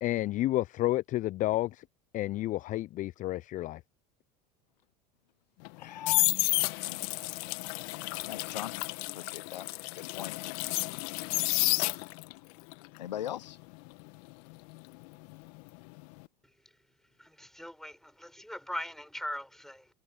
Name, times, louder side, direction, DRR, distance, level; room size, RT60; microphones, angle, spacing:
voice 1, 0.0-1.8 2.1-3.8, left 16 dB, 40° left, 0.4 m, -30 dB
sound 1, 5.6-12.4 12.7-15.6 15.9-16.2, left 28 dB, 65° left, 1.3 m, -31 dB
voice 2, 5.7-6.4 6.8-7.0 8.3-8.7 9.1-10.5 11.2-12.1 13.0-13.6, left 11 dB, 85° left, 0.8 m, -41 dB
voice 3, 17.2-19.9, equal, ahead, 5.5 m, -40 dB
hypercardioid pair, 80°, 21 cm